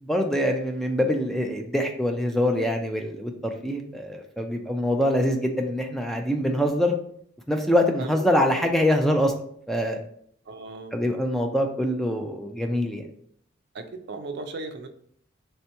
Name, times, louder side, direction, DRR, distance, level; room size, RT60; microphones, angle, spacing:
voice 1, 0.0-3.3 3.6-7.0 7.5-9.3 9.7-10.0 10.9-13.0, equal, ahead, 3 dB, 0.3 m, -24 dB
voice 2, 8.0-8.4 10.5-11.0 13.7-14.9, right 3 dB, 60° right, 7 dB, 0.5 m, -37 dB
3.3 x 2.8 x 4.5 m, 0.65 s
head